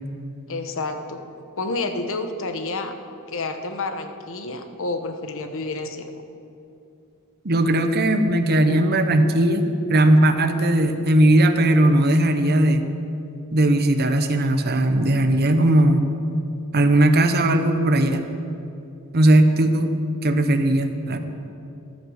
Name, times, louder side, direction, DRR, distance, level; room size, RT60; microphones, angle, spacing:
voice 1, 0.5-1.2 1.6-2.9 3.3-6.1, left 3 dB, 60° left, 7 dB, 1.1 m, -29 dB
voice 2, 7.4-12.8 13.5-16.1 16.7-18.3 19.1-21.2, right 1 dB, 45° right, 7 dB, 0.9 m, -18 dB
14.0 x 11.0 x 6.4 m, 2.7 s
head